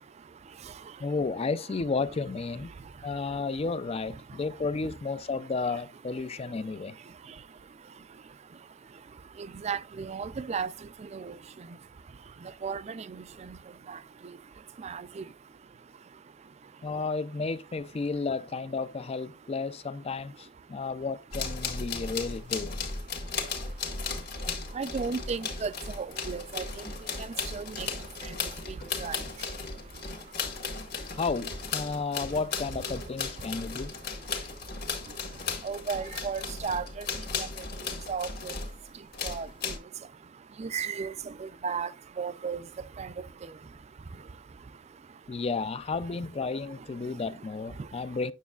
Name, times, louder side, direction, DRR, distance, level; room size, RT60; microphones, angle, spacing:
voice 1, 1.0-2.7 3.0-7.0 16.8-22.8 31.1-33.9 45.3-48.3, left 4 dB, 30° left, 0.4 m, -32 dB
voice 2, 9.6-10.7 11.1-11.3 12.6-13.0 13.5-13.6 13.9-14.0 14.8-15.2 24.7-25.7 26.0-26.6 27.5-27.9 29.0-29.2 35.6-37.1 38.1-38.5 39.2-39.5 40.6-41.1 41.4-41.9 42.2-42.6 43.0-43.1, right 5 dB, 35° right, 0.4 m, -33 dB
sound 1, 21.3-38.8 39.1-39.8, left 5 dB, 55° left, 1.6 m, -36 dB
9.4 x 6.2 x 2.4 m
head